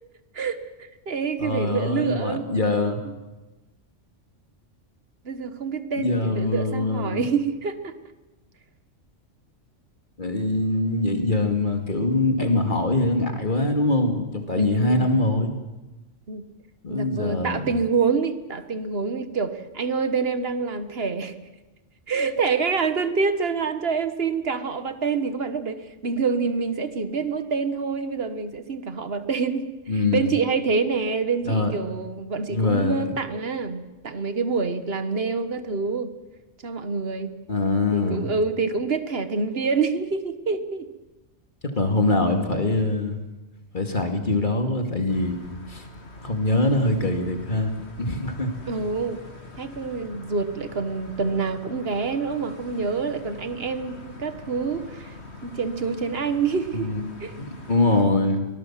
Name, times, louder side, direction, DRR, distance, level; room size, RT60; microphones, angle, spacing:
voice 1, 0.3-2.5 3.0-3.1 5.2-7.9 14.5-15.1 16.3-16.4 16.9-21.3 22.1-29.7 30.1-36.1 36.6-37.3 37.9-40.9 48.7-49.2 49.6-55.1 55.4-56.9 57.2-57.4, right 5 dB, 50° right, 10 dB, 1.7 m, -26 dB
voice 2, 1.4-3.0 6.0-7.2 10.2-15.5 16.8-17.7 29.9-30.3 31.4-31.7 32.5-33.1 37.5-38.3 41.8-43.2 43.7-45.4 45.7-45.8 46.2-48.5 56.8-57.0 57.4-58.5, left 2 dB, 40° left, 5 dB, 2.7 m, -23 dB
sound 1, 45.1-58.0, left 2 dB, 60° left, 2.8 m, -43 dB
24.0 x 19.5 x 7.5 m, 1.1 s
omnidirectional pair, 1.3 m